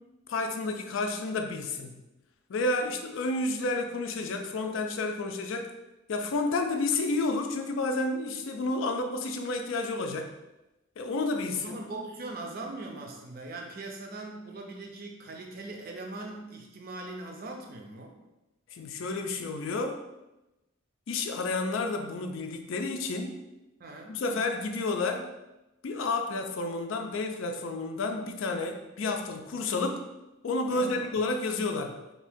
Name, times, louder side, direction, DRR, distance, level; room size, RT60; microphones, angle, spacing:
voice 1, 0.3-1.9 2.5-5.7 6.1-10.3 11.0-11.8 18.7-20.0 21.1-23.4 24.1-25.3 25.8-30.0 30.4-32.0, left 3 dB, 75° left, 5 dB, 0.4 m, -30 dB
voice 2, 11.5-18.2 23.8-24.2 30.7-31.2, right 2 dB, 45° right, 1 dB, 0.5 m, -41 dB
2.8 x 2.6 x 3.5 m, 0.98 s
head